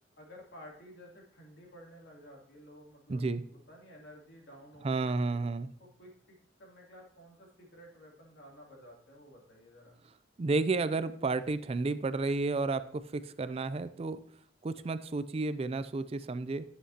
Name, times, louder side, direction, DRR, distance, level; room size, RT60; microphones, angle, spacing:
voice 1, 0.1-3.2 3.5-5.5 5.8-10.0, equal, 80° left, -2 dB, 2.8 m, -53 dB
voice 2, 3.1-3.4 4.8-5.7 10.4-14.2 14.6-16.6, right 3 dB, 35° right, 13 dB, 0.4 m, -31 dB
11.0 x 7.9 x 2.8 m, 0.63 s
head